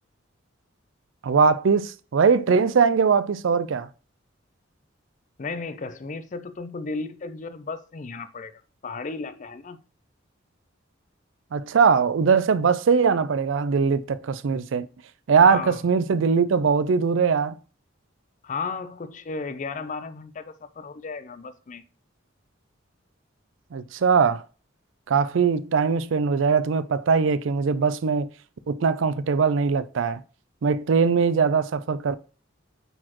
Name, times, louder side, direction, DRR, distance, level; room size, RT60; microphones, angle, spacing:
voice 1, 1.2-3.9 11.5-14.9 15.3-17.5 23.7-24.4 25.1-28.3 28.7-30.2 30.6-32.2, right 5 dB, 70° right, 0.4 m, -21 dB
voice 2, 5.4-9.8 15.4-15.8 18.4-20.4 20.8-21.8, left 4 dB, 40° left, 0.5 m, -34 dB
8.9 x 4.2 x 2.9 m
head